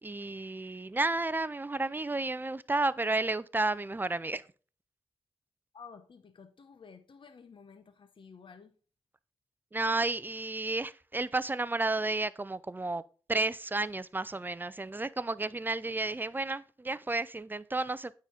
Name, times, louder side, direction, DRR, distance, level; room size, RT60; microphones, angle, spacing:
voice 1, 0.0-4.4 9.7-13.0 13.3-18.1, right 2 dB, 20° right, 0.4 m, -32 dB
voice 2, 5.7-8.7, left 5 dB, 55° left, 0.8 m, -52 dB
9.2 x 3.8 x 4.8 m
cardioid pair, 60°, 10 cm